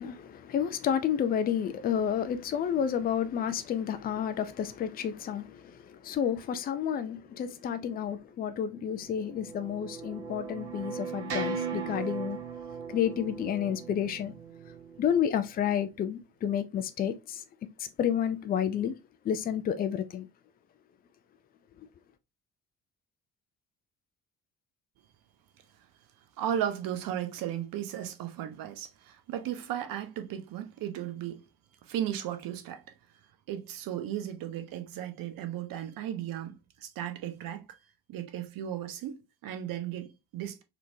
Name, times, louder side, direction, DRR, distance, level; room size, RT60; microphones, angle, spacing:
voice 1, 0.0-12.4 12.9-14.3 15.0-17.4 17.8-18.9 19.2-20.3, left 9 dB, 20° left, 0.4 m, -30 dB
sound 1, 8.8-15.2, right 5 dB, 80° right, 0.8 m, -38 dB
voice 2, 26.4-31.4 31.9-32.8 33.5-37.8 38.1-40.6, right 10 dB, 45° right, 0.8 m, -35 dB
4.2 x 2.8 x 2.6 m
figure-of-eight pair, 45°, 47 cm